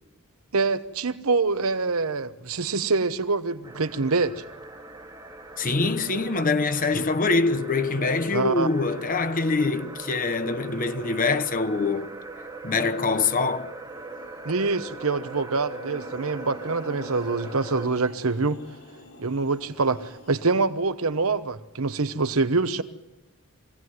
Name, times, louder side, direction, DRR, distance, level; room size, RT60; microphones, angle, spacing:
voice 1, 0.5-4.4 6.9-7.0 8.3-8.7 14.4-18.6 19.2-22.8, right 3 dB, 75° right, 1.0 m, -25 dB
sound 1, 3.6-17.9, right 3 dB, 20° right, 2.2 m, -41 dB
voice 2, 5.6-12.1 12.6-13.7, left 3 dB, 40° left, 1.2 m, -24 dB
sound 2, 13.9-20.7, left 1 dB, 70° left, 7.4 m, -47 dB
24.0 x 17.5 x 9.5 m
head